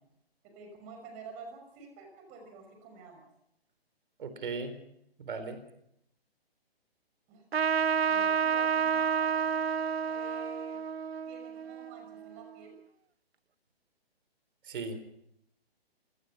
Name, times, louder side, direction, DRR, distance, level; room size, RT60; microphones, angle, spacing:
voice 1, 0.4-3.3 7.3-7.4 8.0-9.7 10.1-10.8 11.3-12.8, right 4 dB, 25° right, 5 dB, 5.9 m, -49 dB
voice 2, 4.2-4.8 5.2-5.6 14.6-15.0, right 4 dB, 55° right, 10 dB, 4.2 m, -37 dB
Trumpet, 7.5-12.5, right 7 dB, 75° right, 0.8 m, -30 dB
27.5 x 18.0 x 5.9 m, 0.76 s
figure-of-eight pair, 140°, 31 cm